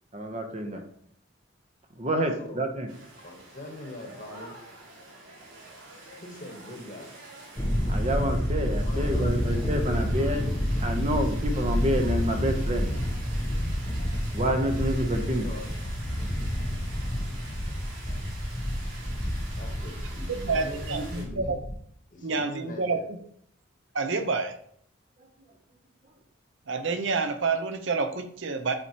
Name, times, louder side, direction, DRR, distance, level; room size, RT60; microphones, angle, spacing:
voice 1, 0.1-0.8 2.0-2.9 7.9-10.5 10.8-12.9 14.3-15.5, equal, 30° right, 5 dB, 0.8 m, -28 dB
voice 2, 2.4-4.5 6.2-7.2 8.8-10.1 15.4-15.8 19.6-21.6 22.1-23.1, left 1 dB, 40° left, 2 dB, 1.2 m, -42 dB
sound 1, 2.9-21.2, right 2 dB, 85° right, 2.6 m, -46 dB
Thunder, 7.6-21.8, equal, 20° left, 0.7 m, -29 dB
voice 3, 20.3-21.6 22.2-23.2 23.9-24.5 26.7-28.8, right 4 dB, 65° right, 8 dB, 0.7 m, -28 dB
7.7 x 4.3 x 2.9 m, 0.64 s
head